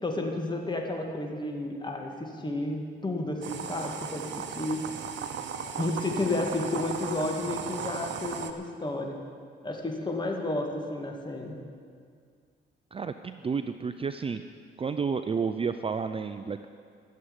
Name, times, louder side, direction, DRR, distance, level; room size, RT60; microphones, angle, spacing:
voice 1, 0.0-4.8 5.7-9.2 9.6-11.5, left 2 dB, 20° left, 2 dB, 2.2 m, -32 dB
sound 1, 3.4-8.5, right 7 dB, 70° right, 1.0 m, -36 dB
voice 2, 12.9-14.4 14.8-16.7, right 5 dB, 30° right, 9 dB, 0.5 m, -31 dB
13.0 x 7.8 x 9.9 m, 2.1 s
cardioid pair, 90°, 20 cm